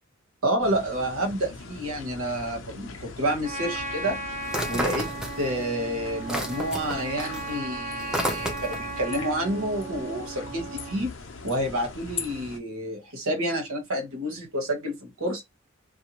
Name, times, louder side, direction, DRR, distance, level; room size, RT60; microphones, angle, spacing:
voice 1, 0.4-4.2 4.7-5.1 5.4-11.1 11.4-15.4, right 1 dB, 85° right, 1.2 m, -29 dB
sound 1, 0.6-12.6, left 4 dB, 70° left, 0.7 m, -41 dB
Trumpet, 3.4-11.0, right 2 dB, 35° right, 1.3 m, -36 dB
sound 2, 4.5-5.7 6.0-8.9, equal, 5° right, 0.5 m, -31 dB
2.6 x 2.2 x 2.9 m
head